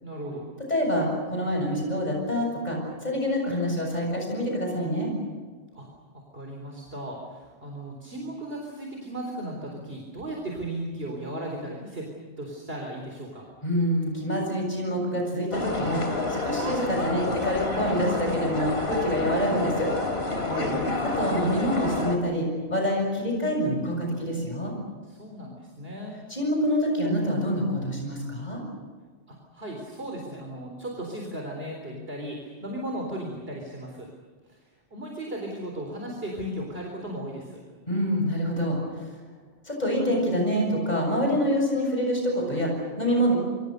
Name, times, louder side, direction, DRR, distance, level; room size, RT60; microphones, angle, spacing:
voice 1, 0.0-0.4 5.7-5.9 6.1-12.1 12.4-13.5 20.4-20.9 25.0-26.2 29.3-34.1 34.5-34.6 34.9-37.6, right 1 dB, 65° right, 0 dB, 4.3 m, -36 dB
voice 2, 0.7-5.1 13.6-16.0 16.4-19.9 21.2-24.7 26.3-28.6 37.9-39.2 39.6-43.4, equal, 40° left, 1 dB, 7.3 m, -26 dB
sound 1, 15.5-22.2, left 2 dB, 75° left, 3.3 m, -29 dB
28.0 x 24.5 x 6.7 m, 1.4 s
omnidirectional pair, 1.1 m